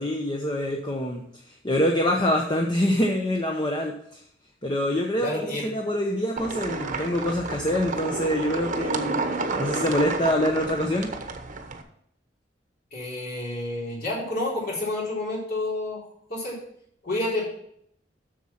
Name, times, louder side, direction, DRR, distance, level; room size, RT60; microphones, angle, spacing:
voice 1, 0.0-4.2 4.6-9.2 9.6-11.1, equal, 25° left, 1 dB, 0.9 m, -25 dB
voice 2, 5.2-5.7 12.9-16.0 16.3-16.6 17.0-17.5, left 2 dB, 60° left, -5 dB, 3.9 m, -29 dB
sound 1, 6.4-11.8, right 3 dB, 45° right, 0.9 m, -30 dB
7.7 x 6.5 x 5.8 m, 0.70 s
head